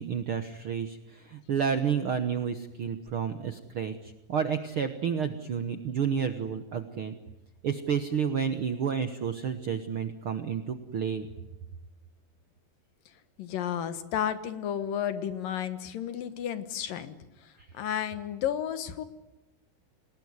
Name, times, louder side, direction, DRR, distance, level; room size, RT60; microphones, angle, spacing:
voice 1, 0.0-7.1 7.6-11.3 17.6-17.7, right 7 dB, 65° right, 8 dB, 1.3 m, -30 dB
voice 2, 13.4-17.1 17.7-19.1, left 9 dB, 75° left, 11 dB, 3.0 m, -32 dB
27.5 x 19.0 x 9.6 m, 1.0 s
omnidirectional pair, 4.1 m